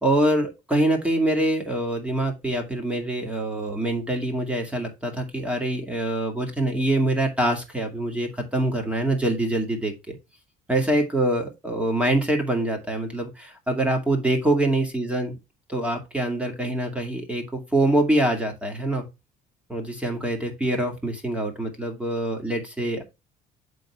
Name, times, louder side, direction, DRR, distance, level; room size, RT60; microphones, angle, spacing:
voice 1, 0.0-10.2 10.7-15.4 15.7-19.1 19.7-23.0, right 1 dB, 5° right, 3 dB, 2.2 m, -25 dB
7.5 x 4.0 x 4.8 m, 0.25 s
cardioid pair, 110°, 17 cm